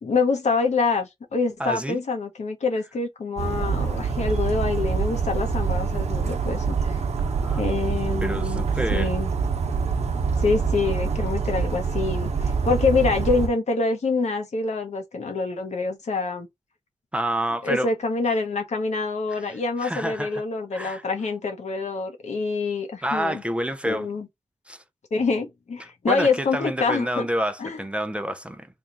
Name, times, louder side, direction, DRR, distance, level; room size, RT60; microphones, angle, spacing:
voice 1, 0.0-7.0 7.6-8.6 8.9-9.3 10.4-16.5 17.6-23.4 23.9-24.3 25.1-27.3 27.6-27.8, left 4 dB, 70° left, 1.0 m, -26 dB
voice 2, 1.6-2.0 7.3-7.9 8.2-9.1 17.1-17.9 19.8-20.4 20.7-21.0 23.0-24.1 24.7-24.8 26.1-28.7, equal, 10° right, 0.5 m, -28 dB
Bird vocalization bird call bird song, 3.4-13.5, right 5 dB, 65° right, 0.9 m, -25 dB
3.4 x 2.4 x 4.0 m
cardioid pair, 55°, 12 cm